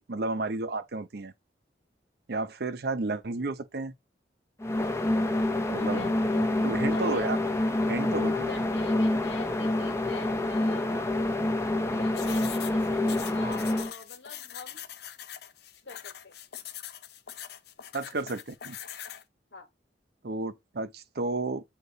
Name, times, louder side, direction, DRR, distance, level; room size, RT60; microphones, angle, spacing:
voice 1, 0.0-1.3 2.3-3.9 5.7-7.4 7.9-8.5 17.9-18.8 20.2-21.6, right 3 dB, 60° right, 0.7 m, -32 dB
sound 1, 4.6-13.9, left 1 dB, 15° left, 0.7 m, -27 dB
voice 2, 5.7-6.5 6.9-7.4 8.3-11.2 11.9-14.8 15.8-16.3 19.5-19.7, left 4 dB, 85° left, 1.6 m, -44 dB
sound 2, 12.1-19.2, left 10 dB, 60° left, 0.6 m, -43 dB
8.2 x 2.9 x 3.9 m
head